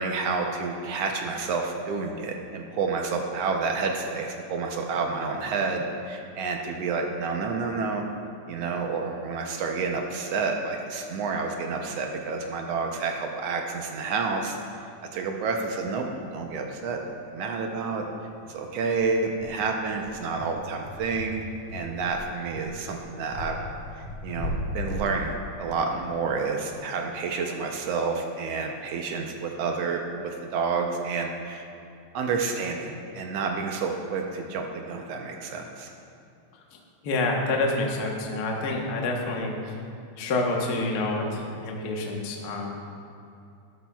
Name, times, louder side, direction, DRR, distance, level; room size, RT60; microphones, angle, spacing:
voice 1, 0.0-8.0 8.5-16.1 16.3-17.0 17.3-18.0 18.5-23.6 24.0-31.6 32.1-35.9, right 4 dB, 75° right, 2 dB, 1.5 m, -29 dB
sound 1, 16.5-16.6 16.9-17.0 17.3-17.5 17.9-18.0 18.4-26.8, left 1 dB, 50° left, 1.8 m, -37 dB
voice 2, 37.0-39.7 40.2-42.8, left 2 dB, 80° left, 0 dB, 0.8 m, -28 dB
12.5 x 12.0 x 2.3 m, 2.6 s
omnidirectional pair, 3.5 m